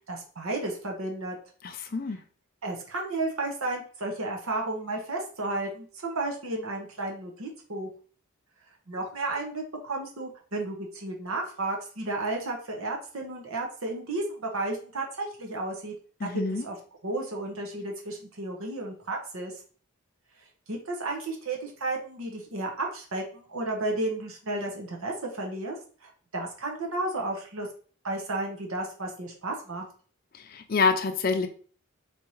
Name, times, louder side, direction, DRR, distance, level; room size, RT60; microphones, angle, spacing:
voice 1, 0.1-1.4 2.6-7.9 8.9-15.9 16.2-16.7 17.0-19.5 20.7-25.8 26.0-27.7 28.0-29.8, right 2 dB, 80° right, 1 dB, 1.0 m, -33 dB
voice 2, 1.6-2.2 16.2-16.6 30.3-31.5, left 4 dB, 40° left, 7 dB, 0.5 m, -27 dB
4.2 x 3.6 x 3.1 m, 0.42 s
head